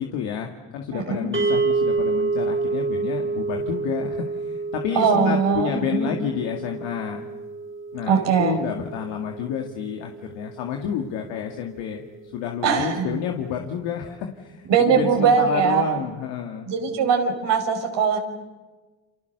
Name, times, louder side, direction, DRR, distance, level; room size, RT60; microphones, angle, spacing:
voice 1, 0.0-7.2 7.9-12.0 12.3-14.7 15.0-16.7, left 8 dB, 90° left, 3 dB, 2.2 m, -30 dB
voice 2, 0.9-1.3 5.0-6.1 8.1-8.6 12.6-13.1 14.7-16.0 16.7-18.2, right 6 dB, 75° right, 3 dB, 5.4 m, -21 dB
sound 1, 1.3-11.6, right 3 dB, 25° right, 3.5 m, -29 dB
30.0 x 27.5 x 6.7 m, 1.3 s
supercardioid pair, 60°, 43 cm